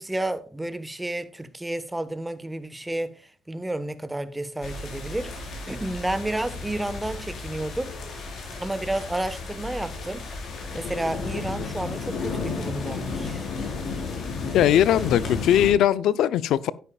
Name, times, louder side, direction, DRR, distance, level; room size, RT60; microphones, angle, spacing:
voice 1, 0.0-7.9 8.6-13.4, right 1 dB, 10° right, 1.3 m, -31 dB
sound 1, 4.6-15.7, left 4 dB, 65° left, 4.7 m, -33 dB
voice 2, 14.5-16.7, left 11 dB, 80° left, 0.6 m, -20 dB
12.5 x 9.9 x 2.4 m
cardioid pair, 90°, 0 cm